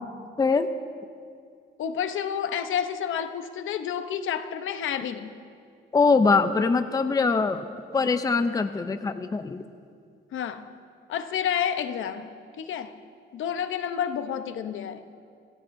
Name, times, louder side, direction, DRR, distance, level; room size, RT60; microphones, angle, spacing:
voice 1, 0.4-0.7 5.9-9.6, left 4 dB, 15° left, 10 dB, 0.5 m, -23 dB
voice 2, 1.8-5.3 10.3-10.7 11.1-12.3 12.6-13.0 13.3-15.0, left 8 dB, 70° left, 9 dB, 0.9 m, -30 dB
26.0 x 17.5 x 2.7 m, 2.3 s
cardioid pair, 125°, 21 cm